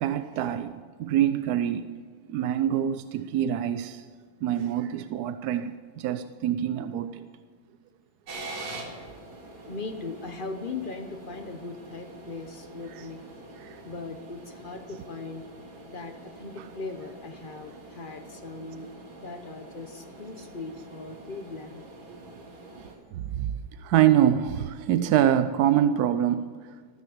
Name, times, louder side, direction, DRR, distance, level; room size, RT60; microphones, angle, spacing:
voice 1, 0.0-2.0 2.3-4.0 4.4-7.3 13.6-13.8 22.8-26.8, right 10 dB, 70° right, 0.9 m, -25 dB
sound 1, 8.3-23.0, right 2 dB, 85° right, 2.9 m, -45 dB
voice 2, 9.6-13.2 13.6-15.4 15.9-18.9 19.2-21.8, left 3 dB, 50° left, 0.6 m, -39 dB
14.0 x 13.0 x 7.1 m
omnidirectional pair, 2.1 m